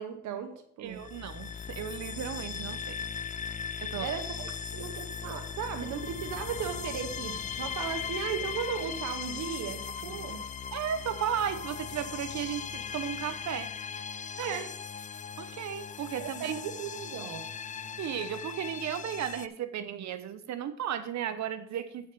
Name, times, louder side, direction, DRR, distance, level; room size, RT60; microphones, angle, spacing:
voice 1, 0.0-1.0 4.0-10.4 14.4-14.7 16.2-17.4, right 8 dB, 85° right, 6 dB, 1.2 m, -36 dB
voice 2, 0.8-3.1 3.8-4.1 10.0-10.3 10.7-13.7 14.4-14.5 15.4-16.5 18.0-22.1, right 9 dB, 65° right, 11 dB, 0.8 m, -35 dB
sound 1, 0.9-19.5, left 7 dB, 25° left, 0.4 m, -38 dB
8.1 x 6.2 x 5.4 m, 0.65 s
cardioid pair, 90°, 30 cm